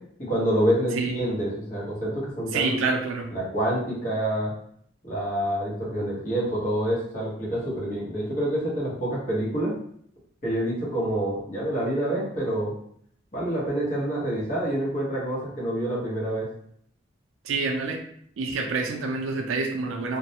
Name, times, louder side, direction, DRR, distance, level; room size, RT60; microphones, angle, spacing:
voice 1, 0.2-2.8 3.3-4.5 5.0-9.8 10.4-12.7 13.3-16.5, right 1 dB, 40° left, -6 dB, 0.9 m, -27 dB
voice 2, 2.5-3.3 17.4-18.0 18.4-20.2, right 4 dB, 80° right, 3 dB, 0.4 m, -27 dB
2.3 x 2.0 x 2.8 m, 0.66 s
head